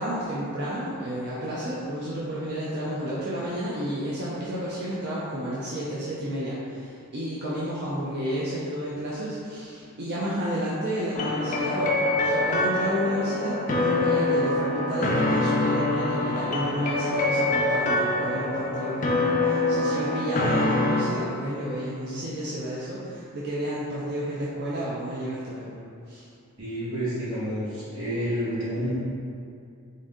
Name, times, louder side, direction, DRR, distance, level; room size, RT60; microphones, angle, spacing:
voice 1, 0.0-25.8 26.1-26.3, equal, 50° right, -8 dB, 0.5 m, -31 dB
sound 1, 11.1-21.0, left 2 dB, 35° left, 0.4 m, -25 dB
voice 2, 26.6-28.9, equal, 80° right, -10 dB, 1.5 m, -29 dB
3.8 x 2.7 x 3.6 m, 2.5 s
head